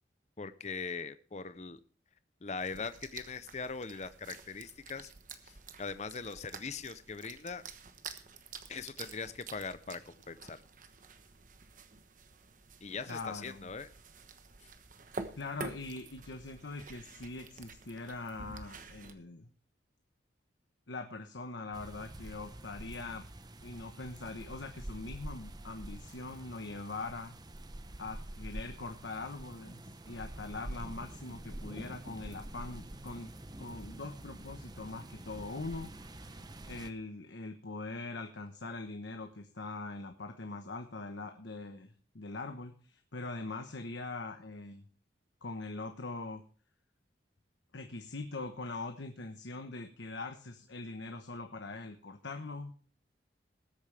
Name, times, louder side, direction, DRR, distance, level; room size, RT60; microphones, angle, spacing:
voice 1, 0.4-1.8 2.4-5.1 5.4-7.6 8.7-10.6 12.8-13.9, left 5 dB, 40° left, 13 dB, 0.6 m, -41 dB
sound 1, 2.6-19.1, right 4 dB, 45° right, 1.1 m, -49 dB
voice 2, 13.1-13.7 15.4-19.5 20.9-23.3 23.6-27.4 28.0-35.9 36.6-44.8 45.4-46.4 47.7-52.7, left 3 dB, 80° left, 6 dB, 1.1 m, -42 dB
sound 2, 21.7-36.9, right 1 dB, 20° right, 0.8 m, -46 dB
20.0 x 8.6 x 3.3 m, 0.41 s
head